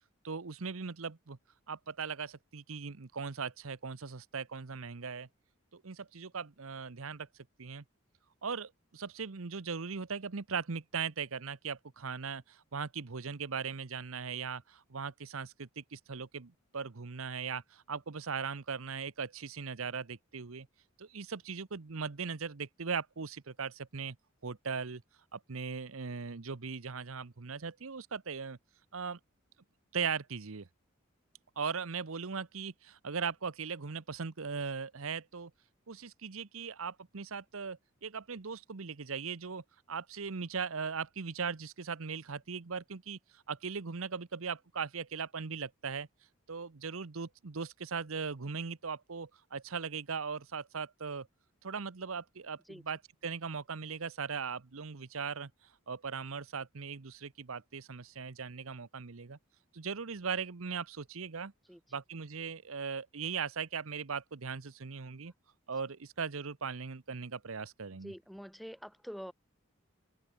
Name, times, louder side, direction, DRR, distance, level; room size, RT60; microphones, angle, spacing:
voice 1, 0.2-1.4 1.7-5.3 5.7-7.3 7.6-7.8 8.4-20.7 21.0-24.2 24.4-25.0 25.3-28.6 28.9-29.2 29.9-30.7 31.6-35.5 35.9-46.1 46.5-51.3 51.6-55.5 55.9-59.4 59.7-61.5 61.9-65.3 65.7-68.1, right 5 dB, 80° right, 0.9 m, -39 dB
voice 2, 68.0-69.3, equal, ahead, 2.1 m, -45 dB
head